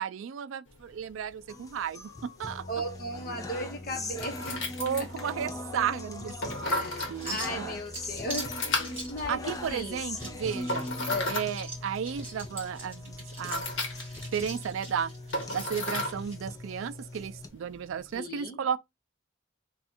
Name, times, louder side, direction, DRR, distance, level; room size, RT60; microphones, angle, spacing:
voice 1, 0.0-2.6 4.8-7.7 9.3-10.9 11.3-13.6 14.3-15.1 15.5-18.8, right 7 dB, 85° right, 0.3 m, -34 dB
Key Pick-up Put-down, 0.7-18.2, left 2 dB, 70° left, 1.1 m, -38 dB
sound 1, 1.5-17.5, left 2 dB, 15° left, 0.4 m, -41 dB
voice 2, 2.7-4.7 5.0-5.1 6.6-10.0 11.1-11.4 18.1-18.6, left 1 dB, 45° left, 1.0 m, -36 dB
sound 2, 5.1-16.4, right 2 dB, 10° right, 1.7 m, -44 dB
3.4 x 2.4 x 4.2 m
head